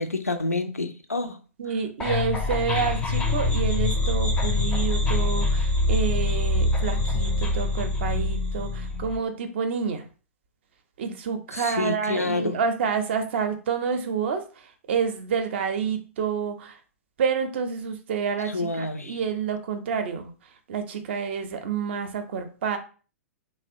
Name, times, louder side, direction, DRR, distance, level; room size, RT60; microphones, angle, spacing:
voice 1, 0.0-1.4 11.5-12.6 18.5-19.2, left 3 dB, 85° left, 8 dB, 0.4 m, -28 dB
voice 2, 1.6-10.1 11.0-16.8 17.2-22.8, right 6 dB, 50° right, 7 dB, 0.5 m, -29 dB
sound 1, 2.0-9.2, left 2 dB, 10° left, 0.4 m, -24 dB
2.9 x 2.1 x 2.5 m, 0.37 s
figure-of-eight pair, 105°, 8 cm